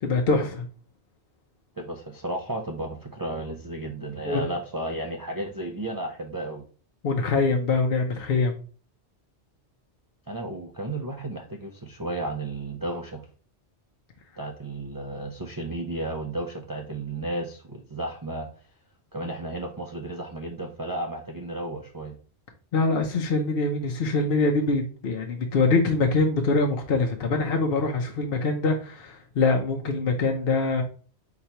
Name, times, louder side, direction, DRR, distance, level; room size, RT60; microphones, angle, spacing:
voice 1, 0.0-0.7 4.2-4.5 7.0-8.6 22.7-30.8, left 3 dB, 60° left, 2 dB, 0.8 m, -24 dB
voice 2, 1.8-6.6 10.3-13.2 14.4-18.5 19.1-22.1, right 1 dB, 35° right, 0 dB, 0.3 m, -33 dB
4.5 x 3.9 x 2.8 m, 0.39 s
omnidirectional pair, 1.2 m